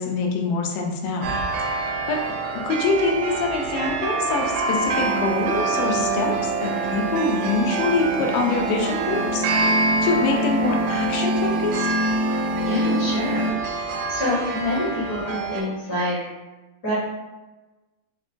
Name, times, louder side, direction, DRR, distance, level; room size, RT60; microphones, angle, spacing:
voice 1, 0.0-1.3 1.6-2.2 2.5-11.9, left 3 dB, 90° left, 1 dB, 2.1 m, -25 dB
sound 1, 1.2-15.6, right 4 dB, 85° right, 2.1 m, -26 dB
sound 2, 4.8-13.5, left 1 dB, 75° left, 1.6 m, -27 dB
voice 2, 12.6-16.2 16.8-16.9, left 1 dB, 45° left, -11 dB, 1.3 m, -27 dB
6.1 x 2.1 x 2.5 m, 1.1 s
omnidirectional pair, 3.7 m